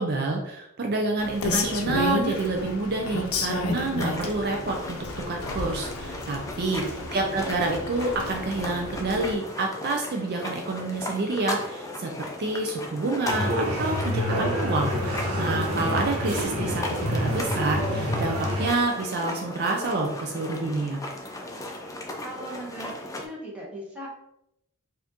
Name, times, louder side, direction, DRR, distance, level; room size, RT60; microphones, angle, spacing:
voice 1, 0.0-5.0 5.3-21.0, right 2 dB, 50° right, 2 dB, 0.4 m, -28 dB
Rain, 1.2-9.4, left 2 dB, 75° left, 0.6 m, -32 dB
sound 1, 3.7-23.3, left 1 dB, 15° left, 0.5 m, -37 dB
voice 2, 6.9-7.5 22.2-24.1, right 1 dB, 5° right, -4 dB, 1.0 m, -39 dB
sound 2, 13.2-18.7, equal, 85° right, 1.1 m, -27 dB
4.2 x 2.6 x 2.9 m, 0.80 s
head